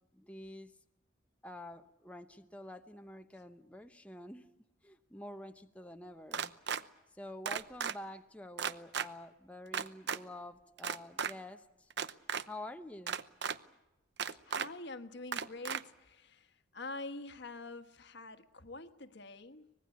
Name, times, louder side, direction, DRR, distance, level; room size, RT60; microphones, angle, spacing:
voice 1, 0.1-0.7 1.4-4.4 4.8-6.5 7.2-11.9 12.5-13.2, left 1 dB, 5° left, 5 dB, 0.9 m, -48 dB
sound 1, 6.3-6.8 7.5-7.9 8.6-9.1 9.7-10.2 10.8-11.3 11.9-12.4 13.1-13.6 14.2-14.7 15.3-15.8, right 7 dB, 55° right, 0.8 m, -35 dB
voice 2, 14.4-19.7, left 2 dB, 55° left, 10 dB, 1.4 m, -46 dB
25.0 x 20.0 x 8.5 m, 0.94 s
head